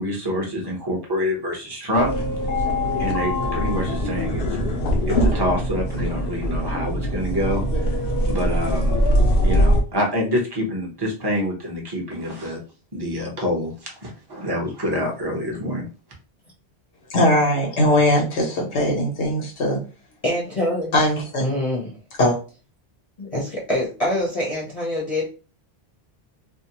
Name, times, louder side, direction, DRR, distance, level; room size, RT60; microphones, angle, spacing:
voice 1, 0.0-2.1 3.0-4.4 5.1-9.0 9.4-12.6 12.9-15.9, left 1 dB, 25° right, -1 dB, 0.7 m, -26 dB
sound 1, 1.9-9.8, equal, 70° left, 0.9 m, -22 dB
voice 2, 17.1-19.8 20.9-21.5 22.2-22.4, left 1 dB, 85° left, -1 dB, 1.2 m, -20 dB
voice 3, 20.2-20.9 21.4-22.0 23.2-25.2, left 1 dB, 35° left, -4 dB, 0.7 m, -25 dB
2.6 x 2.0 x 2.8 m, 0.34 s
omnidirectional pair, 1.1 m